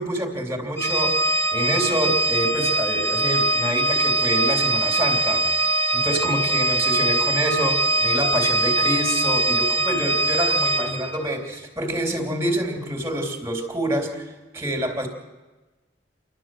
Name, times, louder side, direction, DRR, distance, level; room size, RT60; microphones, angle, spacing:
voice 1, 0.0-15.1, right 1 dB, 15° right, 2 dB, 2.9 m, -27 dB
Organ, 0.8-11.2, right 2 dB, 15° left, 1.7 m, -22 dB
28.5 x 12.5 x 7.6 m, 1.2 s
head